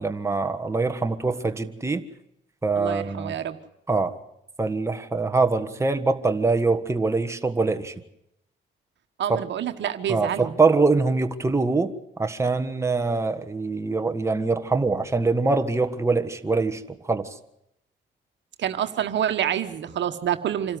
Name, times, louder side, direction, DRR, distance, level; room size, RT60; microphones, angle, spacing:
voice 1, 0.0-2.0 2.6-3.3 3.9-4.2 4.6-7.9 10.1-16.8 17.1-17.3, right 3 dB, 15° right, 7 dB, 1.5 m, -24 dB
voice 2, 2.7-3.6 9.2-10.6 18.6-20.8, right 10 dB, 65° right, 8 dB, 1.4 m, -27 dB
26.5 x 13.0 x 9.6 m, 0.79 s
cardioid pair, 90°, 20 cm